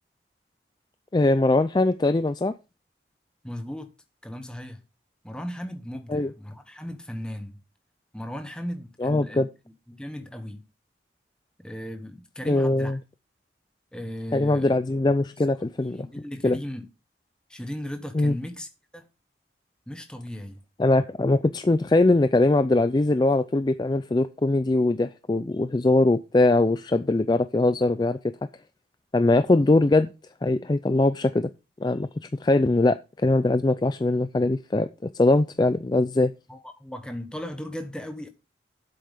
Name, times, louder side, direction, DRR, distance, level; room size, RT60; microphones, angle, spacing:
voice 1, 1.1-2.5 6.1-6.3 9.0-9.5 12.5-13.0 14.3-16.1 16.4-16.6 18.1-18.4 20.8-28.2 29.1-30.1 30.4-31.5 31.8-32.1 32.4-34.9 35.1-36.3, left 2 dB, 25° left, 0.4 m, -21 dB
voice 2, 3.4-3.9 4.2-4.8 5.2-7.6 8.1-9.4 9.9-10.6 11.6-13.0 13.9-14.7 15.8-16.9 17.5-18.7 18.9-19.0 19.9-20.6 36.5-38.3, equal, 5° left, 1.1 m, -36 dB
10.5 x 7.8 x 3.5 m
head